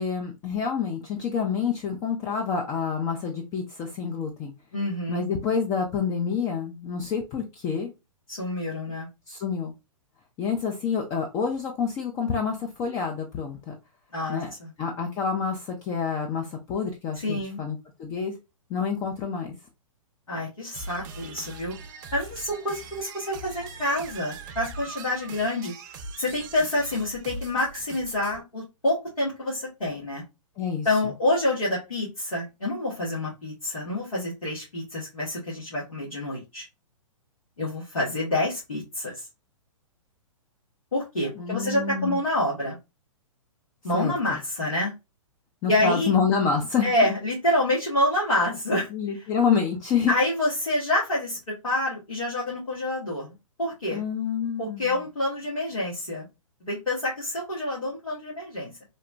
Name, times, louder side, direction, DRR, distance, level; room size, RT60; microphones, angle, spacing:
voice 1, 0.0-4.5 5.1-7.9 9.3-9.7 10.4-13.7 14.3-14.5 14.8-18.3 18.7-19.5 30.6-30.9 41.4-42.2 43.9-44.4 45.6-46.9 48.9-50.1 53.9-54.9, left 6 dB, 20° left, 0.3 m, -27 dB
voice 2, 4.7-5.2 8.3-9.1 14.1-14.7 17.1-17.6 20.3-21.7 22.1-25.7 26.2-30.2 30.8-36.6 37.6-39.2 40.9-42.8 43.8-44.9 45.7-46.1 46.8-48.9 50.1-54.0 54.6-56.2 56.6-58.7, left 1 dB, 90° left, 1.2 m, -27 dB
sound 1, 20.7-28.4, right 3 dB, 35° right, 0.5 m, -41 dB
3.0 x 2.1 x 2.4 m
figure-of-eight pair, 120°, 17 cm